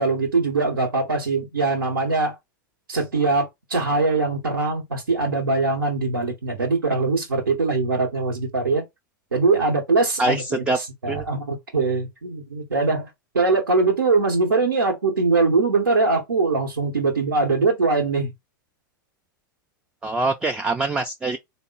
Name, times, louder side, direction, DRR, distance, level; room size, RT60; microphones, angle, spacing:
voice 1, 0.0-2.4 2.9-8.8 9.3-18.3, right 3 dB, 85° right, 1.0 m, -22 dB
voice 2, 10.2-10.8 11.1-11.3 20.0-21.4, right 2 dB, 10° right, 0.3 m, -24 dB
3.6 x 2.0 x 3.9 m
figure-of-eight pair, 95°, 11 cm